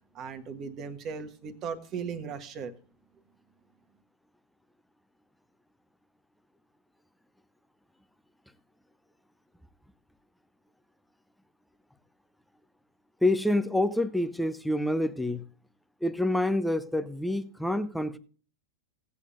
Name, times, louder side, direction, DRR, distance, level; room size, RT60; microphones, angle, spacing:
voice 1, 0.1-2.7, right 6 dB, 35° right, 1.3 m, -37 dB
voice 2, 13.2-15.4 16.0-18.2, left 1 dB, ahead, 0.7 m, -27 dB
17.5 x 8.3 x 2.5 m
figure-of-eight pair, 90°, 0 cm